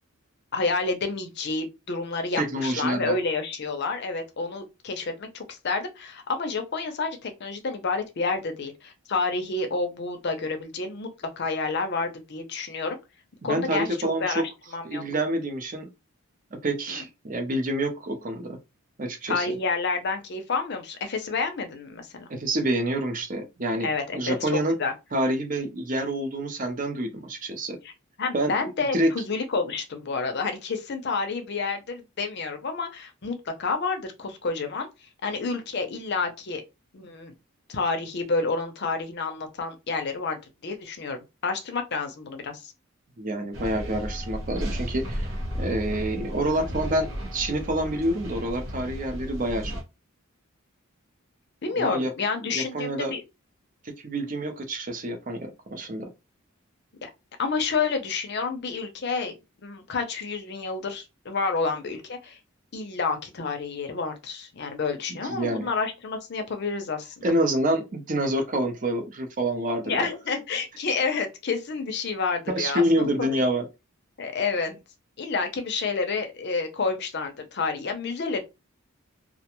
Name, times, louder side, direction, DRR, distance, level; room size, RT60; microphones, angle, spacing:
voice 1, 0.5-13.0 13.4-15.0 16.9-17.0 19.3-22.2 23.8-24.5 24.8-24.9 27.8-27.9 28.2-34.9 35.2-36.6 36.9-37.3 37.7-41.2 41.4-42.7 51.6-53.2 57.0-57.1 57.4-59.3 59.6-62.4 62.7-67.3 69.9-73.4 74.2-74.8 75.2-78.4, left 4 dB, 50° left, 0.5 m, -29 dB
voice 2, 2.4-3.2 13.4-14.4 14.8-15.9 16.6-18.6 19.0-19.5 22.3-24.8 25.1-27.8 28.3-28.5 28.9-29.1 43.2-49.7 51.8-52.1 52.4-53.1 53.8-56.1 65.1-65.7 67.2-70.1 72.5-73.6, right 1 dB, 40° right, 0.5 m, -27 dB
sound 1, 43.5-49.8, equal, 60° right, 1.1 m, -34 dB
2.4 x 2.2 x 2.9 m
head